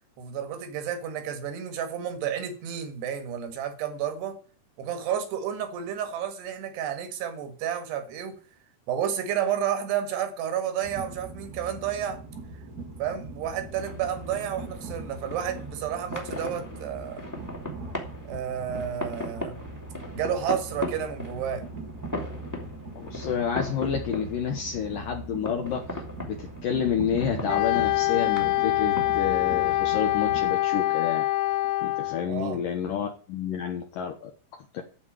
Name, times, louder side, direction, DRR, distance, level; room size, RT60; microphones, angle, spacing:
voice 1, 0.2-4.4 4.8-8.4 8.9-12.2 13.0-17.3 18.3-19.6 20.1-21.7 32.3-32.6, right 9 dB, 75° right, 3.8 m, -31 dB
Train, 10.8-30.6, right 2 dB, 40° right, 1.5 m, -40 dB
sound 1, 13.3-32.6, left 2 dB, 5° left, 1.4 m, -40 dB
voice 2, 23.0-31.2 31.8-34.8, left 7 dB, 65° left, 2.5 m, -30 dB
Wind instrument woodwind instrument, 27.5-32.3, left 18 dB, 85° left, 2.9 m, -25 dB
14.0 x 4.8 x 9.1 m
omnidirectional pair, 4.8 m